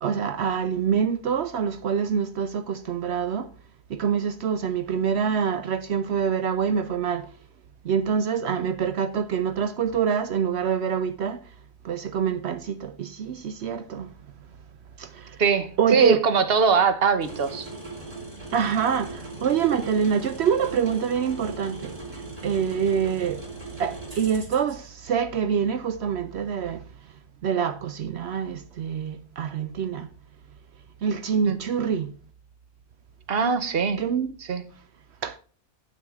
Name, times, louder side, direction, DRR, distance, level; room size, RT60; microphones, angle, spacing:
voice 1, 0.0-3.5 3.9-7.3 7.8-11.4 11.8-14.1 15.0-15.4 15.8-16.2 18.5-22.0 22.4-23.4 23.8-26.8 27.4-30.1 31.0-32.1 34.0-34.3 35.2-35.4, right 7 dB, 75° right, 0.6 m, -26 dB
voice 2, 15.4-17.7 31.5-31.6 33.3-34.0 34.4-34.6, right 5 dB, 45° right, 1.0 m, -22 dB
sound 1, 17.2-24.7, right 2 dB, 20° right, 2.6 m, -39 dB
9.3 x 8.7 x 3.5 m
omnidirectional pair, 1.7 m